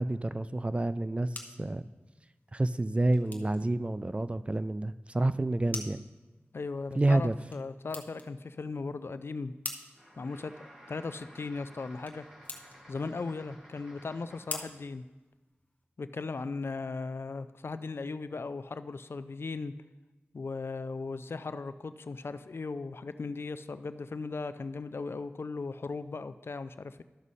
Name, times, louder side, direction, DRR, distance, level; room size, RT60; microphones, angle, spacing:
voice 1, 0.0-1.8 2.5-6.0 7.0-7.3, right 2 dB, 25° right, 13 dB, 0.3 m, -29 dB
sound 1, 0.9-15.8, left 2 dB, 40° left, 1.0 m, -48 dB
voice 2, 6.5-9.5 10.2-10.5 10.9-12.2 12.9-15.0 16.0-19.7 20.3-27.0, left 4 dB, 65° left, 12 dB, 0.4 m, -37 dB
sound 2, 9.9-14.9, equal, 10° right, 2.2 m, -54 dB
12.5 x 6.2 x 4.1 m, 1.1 s
wide cardioid pair, 75°, 4 cm